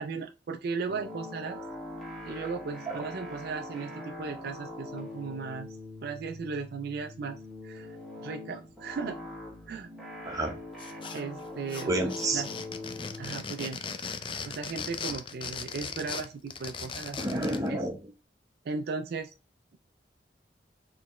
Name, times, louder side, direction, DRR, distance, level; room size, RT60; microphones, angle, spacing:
voice 1, 0.0-1.6 2.3-5.8 6.0-9.2 9.7-9.9 11.1-12.5 13.2-13.9 14.4-17.2 17.7-17.8 18.6-19.3, right 5 dB, 60° right, 7 dB, 0.4 m, -36 dB
sound 1, 0.9-17.4, left 2 dB, ahead, 1.4 m, -43 dB
voice 2, 10.2-10.6 11.9-12.4 17.2-18.0, right 2 dB, 20° right, 1 dB, 0.9 m, -29 dB
sound 2, 10.8-11.4 11.7-17.7, left 5 dB, 30° left, 0.4 m, -38 dB
4.1 x 3.3 x 3.0 m, 0.28 s
head